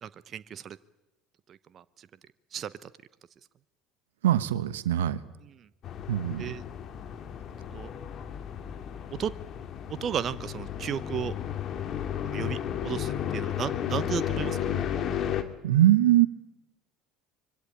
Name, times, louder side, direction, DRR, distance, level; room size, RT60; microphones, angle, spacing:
voice 1, 0.0-0.8 1.5-2.1 2.5-2.9 6.4-6.6 7.7-7.9 9.2-9.3 10.0-11.4 12.3-14.6, right 9 dB, 45° right, 16 dB, 0.9 m, -34 dB
voice 2, 4.2-5.2 6.1-6.5 15.6-16.3, right 13 dB, 75° right, 15 dB, 1.2 m, -22 dB
sound 1, 5.8-15.4, left 9 dB, 45° left, 2.5 m, -33 dB
25.5 x 24.0 x 8.9 m, 0.94 s
hypercardioid pair, 65°, 0 cm